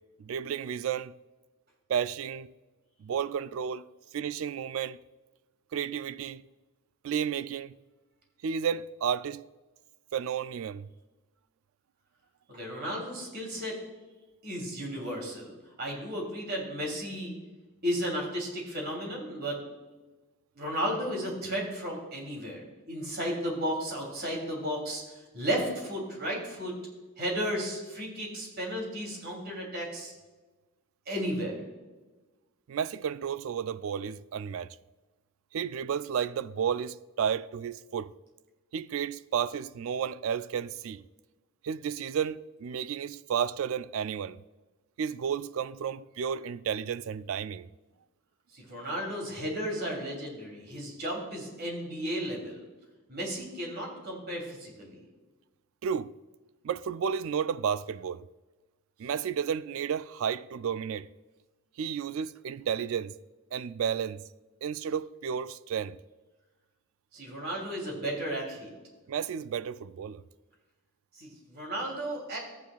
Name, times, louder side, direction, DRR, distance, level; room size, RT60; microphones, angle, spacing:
voice 1, 0.2-1.1 1.9-2.5 3.0-3.9 4.1-5.0 5.7-6.4 7.0-7.8 8.4-9.5 10.1-10.9 32.7-34.8 35.5-38.1 38.7-41.0 41.6-44.4 45.0-47.7 55.8-56.1 56.6-58.3 59.0-61.1 61.8-63.1 63.5-64.2 64.6-66.0 69.1-70.2, right 7 dB, 65° right, 0.3 m, -32 dB
voice 2, 12.5-13.8 14.4-17.3 17.8-19.6 20.5-26.7 27.2-30.1 31.1-31.6 48.5-52.6 53.1-55.0 67.1-68.7 71.1-72.4, equal, 45° right, 3.0 m, -34 dB
14.0 x 9.2 x 2.4 m
head